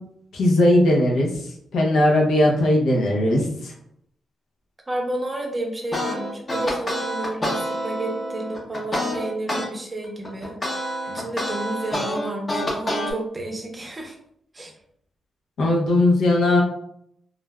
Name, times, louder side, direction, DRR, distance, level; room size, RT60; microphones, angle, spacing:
voice 1, 0.3-1.3 1.7-3.7 15.6-16.6, left 1 dB, 80° left, -1 dB, 0.7 m, -18 dB
voice 2, 4.9-14.2 14.5-14.7, right 1 dB, 20° right, 2 dB, 0.6 m, -31 dB
sound 1, 5.9-9.7 10.0-13.1, equal, 25° left, 0.7 m, -27 dB
3.2 x 2.4 x 2.2 m, 0.70 s
cardioid pair, 115°, 0 cm